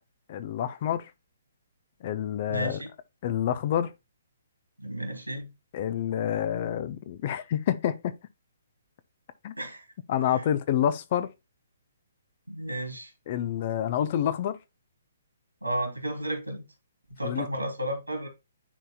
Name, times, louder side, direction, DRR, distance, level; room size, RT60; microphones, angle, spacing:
voice 1, 0.3-1.1 2.0-2.8 3.2-3.9 5.7-8.1 9.4-9.5 10.1-11.3 13.3-14.6 17.2-17.5, left 10 dB, 35° left, 0.6 m, -28 dB
voice 2, 2.5-2.9 4.8-5.5 9.6-9.9 10.2-10.4 12.5-13.1 15.6-16.6 17.2-18.3, right 1 dB, 85° right, 2.8 m, -33 dB
10.0 x 4.2 x 2.2 m
figure-of-eight pair, 130°, 0 cm